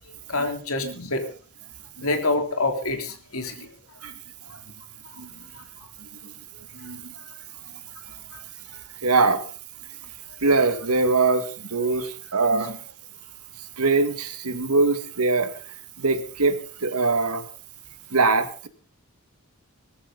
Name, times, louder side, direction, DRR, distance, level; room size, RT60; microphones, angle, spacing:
voice 1, 0.3-1.3 2.0-3.7 4.5-4.6 5.1-5.9 6.8-6.9 8.3-8.4, left 2 dB, 75° left, 5 dB, 3.4 m, -28 dB
voice 2, 6.0-6.3 6.7-7.1 9.0-9.4 10.4-12.8 13.8-17.4 18.1-18.7, right 3 dB, 90° right, 9 dB, 2.1 m, -23 dB
19.5 x 14.0 x 4.1 m, 0.39 s
head